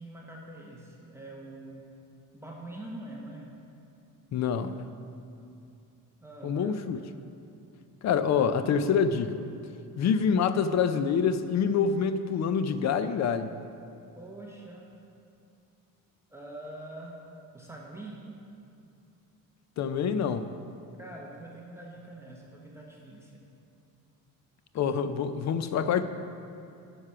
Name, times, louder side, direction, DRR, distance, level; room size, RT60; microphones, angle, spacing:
voice 1, 0.0-1.8 2.3-3.5 6.2-6.7 14.1-14.9 16.3-17.2 17.5-18.2 21.0-23.4, right 1 dB, 10° right, -3 dB, 0.9 m, -44 dB
voice 2, 4.3-4.7 6.4-7.0 8.0-9.4 10.0-13.5 19.8-20.5 24.7-26.0, left 6 dB, 50° left, 11 dB, 0.5 m, -26 dB
9.8 x 6.3 x 5.6 m, 2.6 s
cardioid pair, 160°, 35 cm